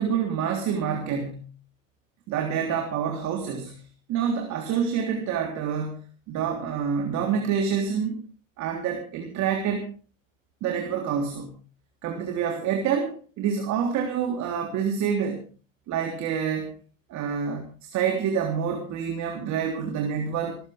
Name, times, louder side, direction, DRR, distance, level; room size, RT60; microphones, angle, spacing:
voice 1, 0.0-1.5 2.3-3.8 4.1-6.0 6.3-8.2 8.6-9.9 10.6-11.5 12.0-15.4 15.9-16.7 17.1-20.6, right 7 dB, 45° right, 3 dB, 3.6 m, -27 dB
23.0 x 15.0 x 3.5 m, 0.36 s
supercardioid pair, 115°, 40 cm